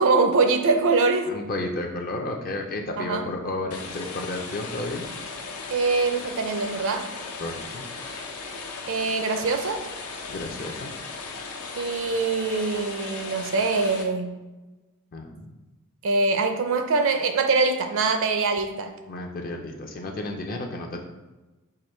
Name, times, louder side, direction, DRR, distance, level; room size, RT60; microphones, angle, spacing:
voice 1, 0.0-1.3 3.0-3.3 5.7-7.1 8.9-9.8 11.8-14.4 16.0-18.9, right 3 dB, 65° right, 7 dB, 0.5 m, -23 dB
voice 2, 1.3-5.1 7.4-7.8 10.3-10.9 15.1-15.5 19.1-21.0, left 2 dB, 40° left, 2 dB, 0.4 m, -32 dB
sound 1, 3.7-14.0, left 4 dB, 85° left, 0.7 m, -37 dB
4.8 x 2.5 x 4.3 m, 1.1 s
head